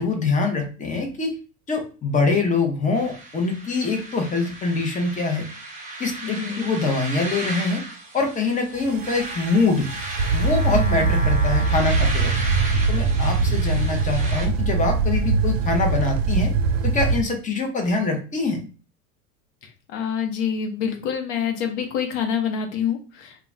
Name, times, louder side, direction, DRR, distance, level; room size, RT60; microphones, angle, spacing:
voice 1, 0.0-1.4 1.7-5.5 6.0-7.8 8.1-9.9 10.3-12.3 12.9-16.5 16.8-18.6, left 3 dB, 20° left, 3 dB, 0.8 m, -24 dB
sound 1, 2.9-14.5, right 2 dB, 20° right, 0.7 m, -35 dB
voice 2, 6.2-6.7 10.7-11.1 19.9-23.4, left 7 dB, 60° left, 4 dB, 0.9 m, -27 dB
sound 2, 8.8-17.2, right 4 dB, 65° right, 0.5 m, -22 dB
2.3 x 2.3 x 3.2 m, 0.36 s
hypercardioid pair, 100°, 42 cm